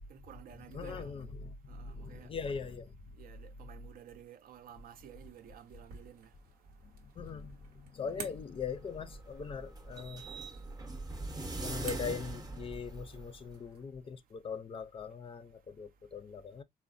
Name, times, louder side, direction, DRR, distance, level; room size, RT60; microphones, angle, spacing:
voice 1, 0.1-1.2 1.7-2.3 3.2-6.3 8.0-8.3 8.6-8.8, right 9 dB, 70° right, 0.4 m, -53 dB
voice 2, 0.7-2.9 7.2-10.2 11.6-16.6, left 6 dB, 35° left, 0.4 m, -41 dB
sound 1, 4.7-13.9, right 5 dB, 90° right, 0.9 m, -53 dB
sound 2, 8.5-13.6, right 2 dB, 25° right, 0.7 m, -42 dB
3.7 x 2.0 x 2.5 m
cardioid pair, 110°, 15 cm